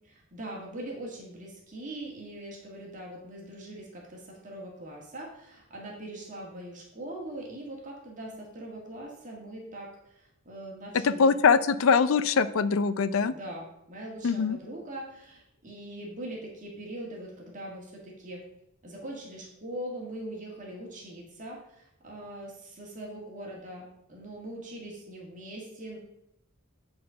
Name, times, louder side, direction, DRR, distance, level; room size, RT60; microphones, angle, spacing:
voice 1, 0.0-11.3 13.3-18.4 18.8-26.0, right 1 dB, 40° right, -2 dB, 1.8 m, -41 dB
voice 2, 11.0-13.3 14.2-14.6, left 5 dB, 80° left, 14 dB, 0.5 m, -23 dB
9.4 x 4.4 x 5.6 m, 0.81 s
head